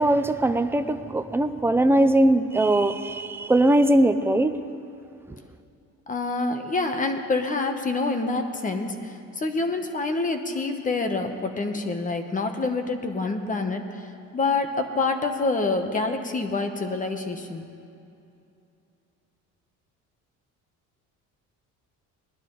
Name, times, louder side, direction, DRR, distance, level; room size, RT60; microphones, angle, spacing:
voice 1, 0.0-4.5, right 1 dB, 5° right, 9 dB, 0.4 m, -20 dB
voice 2, 6.1-17.7, left 3 dB, 25° left, 6 dB, 1.0 m, -27 dB
20.0 x 11.5 x 3.9 m, 2.6 s
cardioid pair, 130°, 32 cm